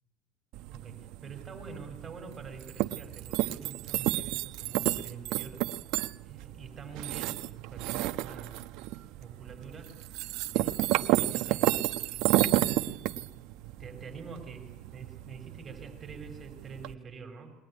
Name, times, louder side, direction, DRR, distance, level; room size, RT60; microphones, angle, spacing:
sound 1, 0.5-16.9, right 16 dB, 55° right, 1.0 m, -32 dB
voice 1, 0.7-5.6 6.2-8.6 9.2-10.0 10.5-11.8 12.4-13.1 13.8-17.5, right 4 dB, 20° right, 4 dB, 5.3 m, -46 dB
22.0 x 20.0 x 10.0 m, 1.1 s
supercardioid pair, 145°, 0 cm